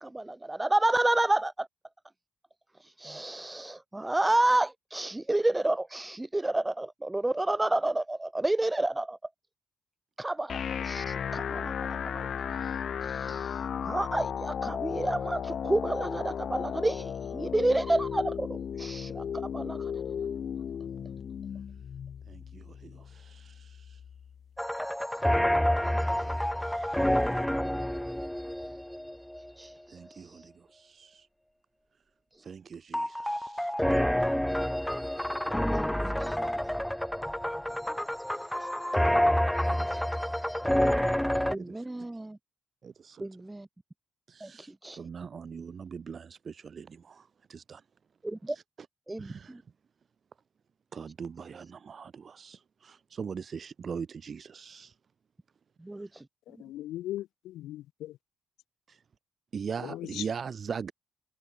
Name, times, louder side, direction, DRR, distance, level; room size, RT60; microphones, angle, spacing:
voice 1, 0.0-1.7 3.0-9.2 10.2-10.6 10.8-12.3 12.5-12.8 13.0-19.2 19.5-19.8 29.6-29.7 36.2-36.4 38.6-38.7 41.5-42.4 43.2-43.7 44.4-45.0 48.2-48.6 49.1-49.6, right 2 dB, 15° right, 0.4 m, -30 dB
sound 1, 10.5-24.5, left 8 dB, 55° left, 4.3 m, -35 dB
voice 2, 22.3-24.0 25.8-27.5 29.9-31.3 32.4-33.7 36.0-36.8 38.3-38.4 39.6-40.5 41.6-42.1 42.8-43.2 44.3-47.8 48.5-48.6 49.2-49.6 50.9-54.9 58.9-59.0 59.5-60.9, right 6 dB, 45° right, 1.4 m, -42 dB
sound 2, 24.6-29.5 32.9-41.6, equal, 5° left, 2.9 m, -28 dB
voice 3, 56.5-58.2 59.8-60.3, left 14 dB, 85° left, 1.6 m, -39 dB
cardioid pair, 90°, 0 cm